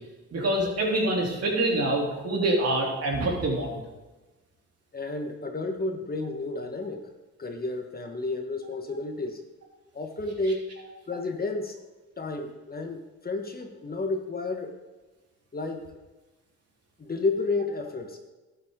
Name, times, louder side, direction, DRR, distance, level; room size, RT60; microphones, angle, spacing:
voice 1, 0.3-3.8, right 1 dB, 55° right, -1 dB, 3.3 m, -25 dB
voice 2, 4.9-7.0 7.4-9.4 9.9-10.6 11.1-11.8 12.2-14.7 15.5-15.9 17.0-18.2, left 3 dB, 30° left, 4 dB, 1.4 m, -31 dB
12.0 x 9.4 x 3.8 m, 1.2 s
cardioid pair, 90°, 30 cm